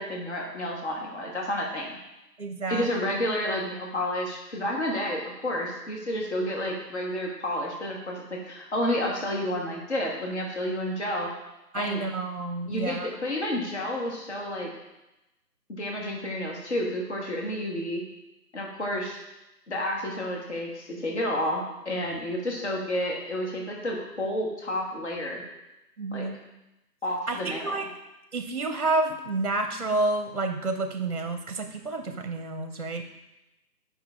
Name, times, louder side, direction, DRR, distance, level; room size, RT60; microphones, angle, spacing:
voice 1, 0.0-1.9 2.7-11.3 11.7-12.0 12.7-14.7 15.7-18.0 18.5-19.2 19.7-25.4 26.1-26.2 27.0-27.8, left 1 dB, 45° left, -1 dB, 1.5 m, -30 dB
voice 2, 2.4-2.9 11.7-13.1 26.0-26.4 27.3-27.8 28.3-33.1, right 2 dB, 45° right, 6 dB, 0.7 m, -29 dB
8.5 x 5.6 x 3.6 m, 0.95 s
hypercardioid pair, 175°, 49 cm